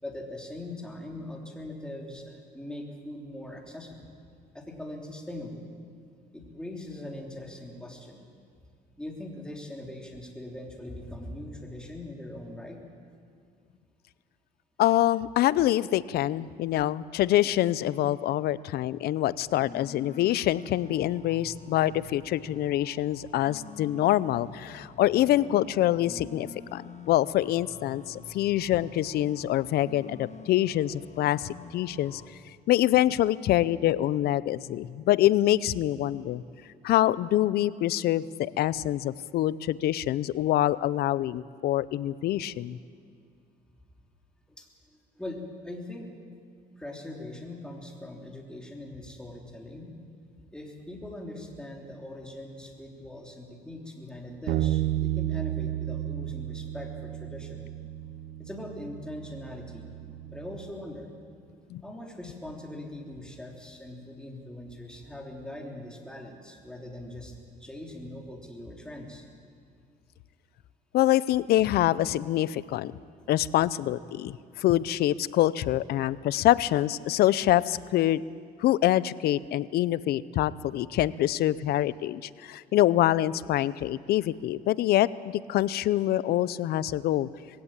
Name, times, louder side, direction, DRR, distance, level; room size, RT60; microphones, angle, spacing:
voice 1, 0.0-4.1 4.5-5.6 6.3-8.2 9.0-12.8 44.6-46.1 46.8-49.9 50.5-57.6 58.4-59.9 60.3-61.1 61.8-67.3 67.6-69.2, left 1 dB, 5° left, 0 dB, 3.4 m, -41 dB
voice 2, 14.8-32.2 32.7-36.4 36.8-42.8 61.7-61.8 70.9-73.0 73.3-78.2 78.6-85.1 85.5-87.3, left 13 dB, 70° left, 18 dB, 0.6 m, -25 dB
sound 1, 19.5-32.3, left 5 dB, 40° left, 1.7 m, -47 dB
Bass guitar, 54.5-60.7, right 13 dB, 80° right, 0.7 m, -32 dB
21.0 x 16.5 x 8.9 m, 2.3 s
cardioid pair, 110°, 17 cm